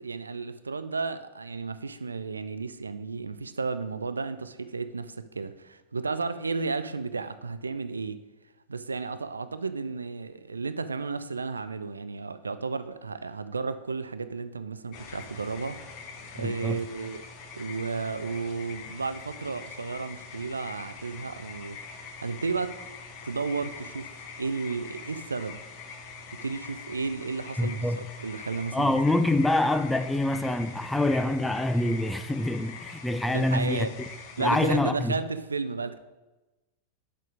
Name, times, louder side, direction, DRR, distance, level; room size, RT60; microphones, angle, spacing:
voice 1, 0.0-8.2 8.7-15.8 16.3-17.2 17.5-21.8 22.2-22.8 23.2-25.6 26.3-29.0 33.3-33.9 34.4-36.0, right 4 dB, 75° right, 0.4 m, -33 dB
sound 1, 14.9-34.8, left 5 dB, 40° left, 0.9 m, -44 dB
voice 2, 16.4-16.8 27.6-28.0 28.7-33.9 34.4-35.1, left 1 dB, 5° left, 0.4 m, -26 dB
6.7 x 5.0 x 5.0 m
figure-of-eight pair, 90°, 0 cm